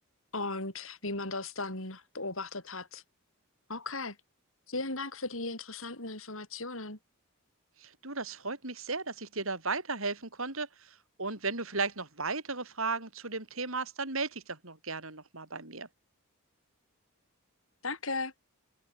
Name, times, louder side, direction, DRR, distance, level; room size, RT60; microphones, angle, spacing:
voice 1, 0.3-3.0 3.7-4.2 4.7-7.0 17.8-18.3, left 3 dB, 65° left, 7.5 m, -36 dB
voice 2, 7.8-15.9, right 3 dB, 70° right, 5.6 m, -35 dB
head